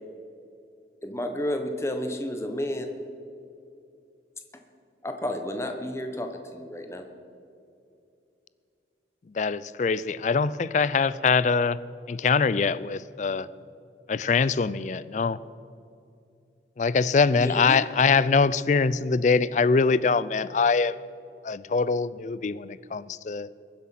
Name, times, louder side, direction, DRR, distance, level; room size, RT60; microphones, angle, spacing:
voice 1, 1.0-2.9 5.0-7.1 17.3-17.8, left 1 dB, 15° left, 5 dB, 1.0 m, -31 dB
voice 2, 9.4-11.8 12.1-13.5 14.1-15.4 16.8-21.0 21.4-23.5, left 4 dB, 40° left, 17 dB, 0.4 m, -23 dB
21.5 x 7.6 x 5.9 m, 2.6 s
head